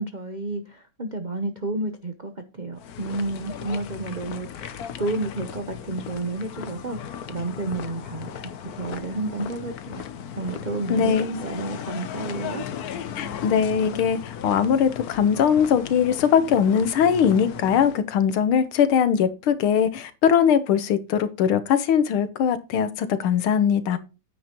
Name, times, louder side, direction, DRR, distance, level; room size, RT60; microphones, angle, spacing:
voice 1, 0.0-10.0 10.4-12.7, right 2 dB, 70° right, 0.4 m, -31 dB
sound 1, 2.8-18.0, left 8 dB, 60° left, 1.1 m, -36 dB
voice 2, 10.9-11.4 13.2-24.0, left 8 dB, 90° left, 1.9 m, -21 dB
9.5 x 8.4 x 3.0 m
omnidirectional pair, 2.3 m